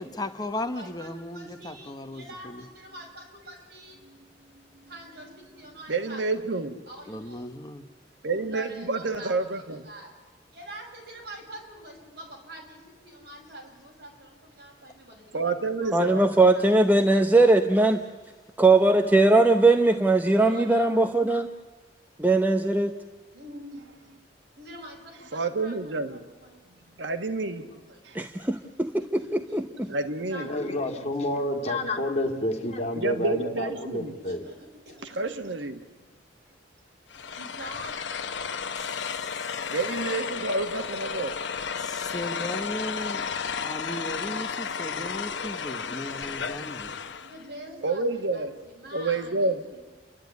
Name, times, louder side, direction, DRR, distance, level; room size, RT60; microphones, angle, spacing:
voice 1, 0.0-2.6 7.1-7.8 38.7-39.6 41.8-43.3 43.6-46.9, left 1 dB, 20° left, 1.1 m, -36 dB
voice 2, 0.7-4.0 4.8-7.5 8.2-10.1 10.5-16.6 17.2-17.6 20.4-21.0 23.3-24.0 24.6-26.6 27.6-28.0 29.0-30.8 31.2-31.4 34.2-35.5 37.4-38.0 47.0-49.8, right 1 dB, 60° right, 6.5 m, -45 dB
voice 3, 5.9-6.8 8.2-9.9 15.3-16.3 25.3-26.2 27.0-27.7 28.0-28.2 29.9-30.5 32.9-34.1 35.2-35.8 39.7-41.3 47.8-48.6 48.9-49.6, right 3 dB, 90° right, 1.4 m, -29 dB
voice 4, 15.9-18.0 18.6-21.5 22.2-23.0 28.1-29.9, right 2 dB, 10° right, 0.8 m, -20 dB
voice 5, 30.3-34.4, left 1 dB, 35° left, 2.2 m, -29 dB
sound 1, 37.1-47.4, left 6 dB, 85° left, 0.9 m, -33 dB
29.5 x 11.5 x 9.5 m
head